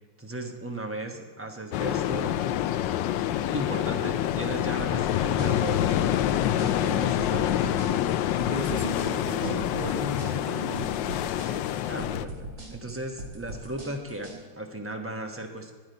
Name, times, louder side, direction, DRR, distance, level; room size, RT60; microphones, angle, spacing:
voice 1, 0.2-2.4 3.5-8.0 11.9-15.7, right 1 dB, 10° right, 3 dB, 0.8 m, -36 dB
sound 1, 1.7-12.3, left 11 dB, 75° left, 1.2 m, -27 dB
sound 2, 4.8-14.4, right 1 dB, 55° right, 2.7 m, -41 dB
voice 2, 8.5-11.0, right 1 dB, 30° right, 3 dB, 1.1 m, -35 dB
12.0 x 9.7 x 5.3 m, 1.5 s
omnidirectional pair, 2.1 m